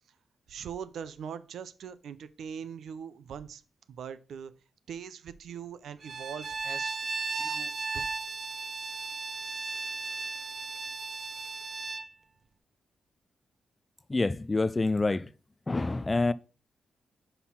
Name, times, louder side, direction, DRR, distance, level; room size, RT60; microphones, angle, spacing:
voice 1, 0.5-3.6 3.9-4.5 4.9-7.0 7.3-8.1, right 7 dB, 80° right, 0.5 m, -41 dB
Bowed string instrument, 6.0-12.1, right 4 dB, 40° right, 0.6 m, -35 dB
voice 2, 14.1-15.3 15.7-16.3, left 3 dB, 20° left, 0.3 m, -27 dB
5.5 x 4.3 x 5.7 m
cardioid pair, 100°, 0 cm